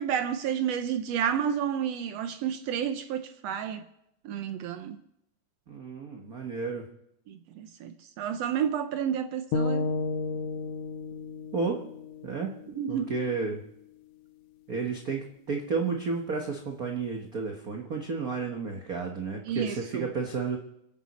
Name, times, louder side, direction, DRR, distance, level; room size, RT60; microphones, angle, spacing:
voice 1, 0.0-3.8 4.3-5.0 7.3-9.9 12.7-13.1 19.5-20.1, right 8 dB, 75° right, 1.5 m, -31 dB
voice 2, 5.7-6.8 11.5-11.8 12.2-12.5 12.9-13.6 14.7-20.6, right 4 dB, 60° right, 0.9 m, -32 dB
sound 1, 9.5-13.6, left 4 dB, 70° left, 1.9 m, -33 dB
27.0 x 9.2 x 4.1 m
omnidirectional pair, 3.5 m